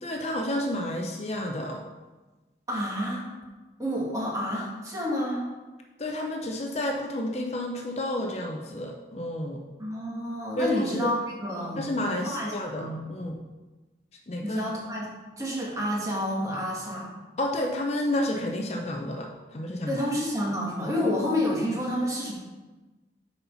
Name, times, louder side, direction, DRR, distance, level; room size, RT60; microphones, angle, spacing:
voice 1, 0.0-1.8 6.0-9.6 10.6-11.1 11.8-13.4 14.3-14.6 17.4-20.0, left 1 dB, 35° left, 2 dB, 0.6 m, -30 dB
voice 2, 2.7-3.3 3.8-5.5 9.8-11.8 12.2-13.0 14.4-15.0 15.3-17.1 19.9-22.3, equal, 20° right, -4 dB, 1.8 m, -29 dB
7.8 x 4.3 x 5.5 m, 1.2 s
head